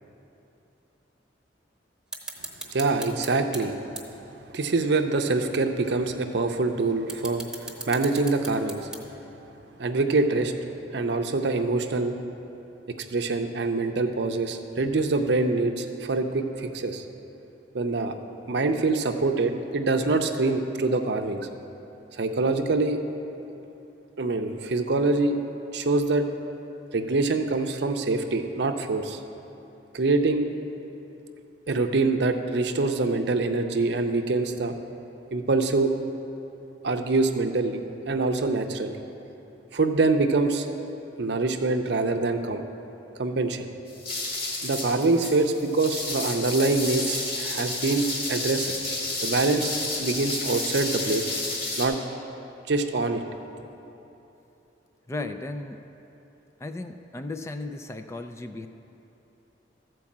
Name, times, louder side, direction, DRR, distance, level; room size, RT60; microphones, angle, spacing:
sound 1, 2.1-3.6 4.0-4.1 4.7-4.8 6.1-6.2 6.9-9.3, right 3 dB, 5° right, 0.9 m, -37 dB
voice 1, 2.7-3.8 4.5-8.9 9.8-10.5 10.9-12.2 13.1-17.0 17.7-18.1 18.5-21.5 22.2-23.0 24.2-25.4 25.7-26.3 26.9-29.2 29.9-30.5 31.7-34.8 35.3-35.9 36.8-39.0 39.7-40.6 41.2-42.6 43.2-43.7 44.6-48.7 49.2-49.7 50.0-51.3 51.8-52.0 52.7-53.2, right 3 dB, 65° right, 6 dB, 0.6 m, -25 dB
sound 2, 43.9-51.9, left 2 dB, 55° left, 1.9 m, -31 dB
voice 2, 55.1-55.8 56.6-58.7, left 2 dB, 15° left, 7 dB, 0.3 m, -35 dB
13.5 x 4.6 x 7.3 m, 3.0 s
head